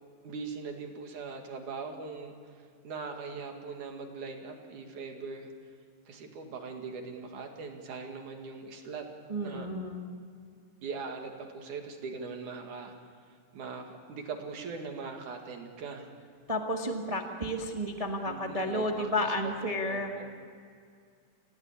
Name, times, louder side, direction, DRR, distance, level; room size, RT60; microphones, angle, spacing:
voice 1, 0.2-2.3 2.8-5.5 6.1-9.0 9.4-9.7 10.8-12.9 13.5-16.1 18.3-19.3 19.6-20.3, right 4 dB, 75° right, 3 dB, 3.5 m, -41 dB
voice 2, 9.3-10.0 16.5-20.1, left 1 dB, 25° right, 2 dB, 0.7 m, -32 dB
29.0 x 17.0 x 8.6 m, 2.2 s
omnidirectional pair, 3.6 m